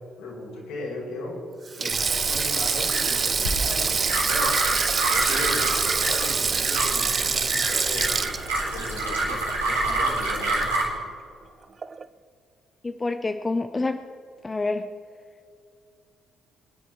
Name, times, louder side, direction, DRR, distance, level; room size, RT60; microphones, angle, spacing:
voice 1, 0.2-1.4 1.7-4.5 5.1-8.1 8.7-9.4 9.7-10.7, left 2 dB, 70° left, -3 dB, 4.9 m, -36 dB
Sink (filling or washing), 1.7-10.1 10.4-10.6 11.8-12.1, right 5 dB, 40° right, 0.5 m, -26 dB
sound 1, 1.9-10.9, right 2 dB, 85° right, 4.0 m, -28 dB
voice 2, 12.8-14.0 14.4-14.9, left 3 dB, 25° left, 7 dB, 0.8 m, -27 dB
24.0 x 10.0 x 4.7 m, 2.3 s
figure-of-eight pair, 45°, 0 cm